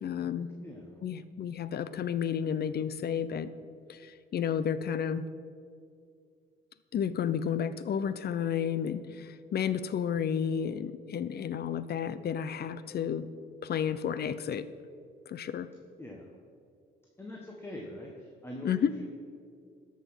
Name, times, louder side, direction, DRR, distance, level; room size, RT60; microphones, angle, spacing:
voice 1, 0.0-0.5 1.0-3.5 3.9-5.3 6.9-13.3 13.6-14.7 15.3-15.7 18.6-18.9, left 8 dB, 55° left, 14 dB, 0.6 m, -31 dB
voice 2, 0.6-0.9 16.0-16.3 17.2-18.7 19.0-19.1, left 1 dB, 10° left, -1 dB, 1.5 m, -43 dB
13.0 x 5.9 x 6.2 m, 2.3 s
cardioid pair, 90°, 20 cm